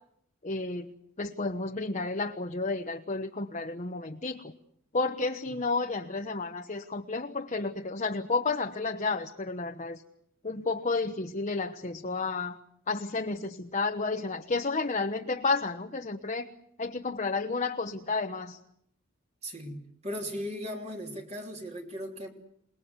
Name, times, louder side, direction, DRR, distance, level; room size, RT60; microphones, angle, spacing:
voice 1, 0.4-0.9 1.2-4.4 4.9-10.0 10.4-12.6 12.9-16.5 16.8-18.6, left 3 dB, 35° left, 5 dB, 1.1 m, -31 dB
voice 2, 19.4-22.3, equal, 30° right, 2 dB, 3.1 m, -37 dB
28.0 x 19.5 x 8.1 m, 0.73 s
head